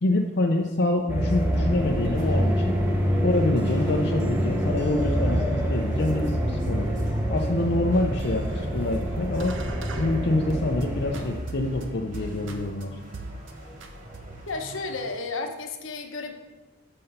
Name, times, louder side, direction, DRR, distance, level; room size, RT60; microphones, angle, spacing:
voice 1, 0.0-2.8 3.2-6.9 7.3-9.5 9.9-13.0, left 2 dB, 55° left, 0 dB, 0.6 m, -26 dB
sound 1, 1.1-11.4, equal, 10° right, 0.8 m, -26 dB
sound 2, 1.1-10.8 11.1-12.8 13.1-13.5 13.8-14.6, right 2 dB, 65° right, 0.8 m, -42 dB
sound 3, 1.2-15.1, right 1 dB, 40° right, 1.4 m, -44 dB
voice 2, 14.5-16.3, left 3 dB, 75° left, 5 dB, 0.9 m, -32 dB
6.5 x 5.8 x 5.5 m, 1.2 s
head